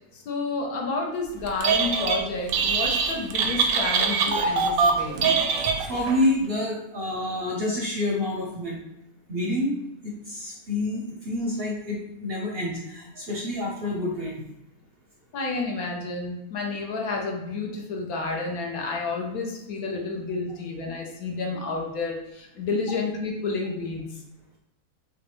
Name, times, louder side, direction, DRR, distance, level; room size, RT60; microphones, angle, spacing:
voice 1, 0.1-5.2 15.3-24.0, left 3 dB, 70° left, 0 dB, 1.3 m, -30 dB
Telephone, 1.5-2.2 2.5-6.2, right 5 dB, 70° right, 1.0 m, -23 dB
voice 2, 5.9-8.8 9.3-9.8 10.0-14.4, left 1 dB, 55° right, -2 dB, 0.7 m, -28 dB
6.1 x 2.2 x 3.1 m, 0.88 s
omnidirectional pair, 1.6 m